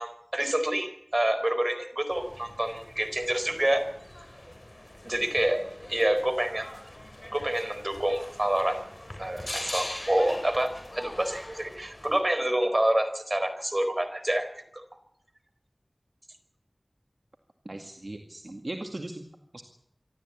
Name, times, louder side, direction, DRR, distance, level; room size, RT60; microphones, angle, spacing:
voice 1, 0.0-3.8 5.0-5.6 5.9-6.7 7.3-8.8 9.2-14.5 14.7-14.8, right 1 dB, 40° right, 8 dB, 4.3 m, -27 dB
sound 1, 2.1-12.2, left 1 dB, 35° left, 4.4 m, -42 dB
voice 2, 17.7-19.2 19.5-19.6, right 1 dB, 60° right, 4 dB, 2.1 m, -38 dB
26.0 x 13.0 x 8.6 m, 0.76 s
wide cardioid pair, 45°, 0 cm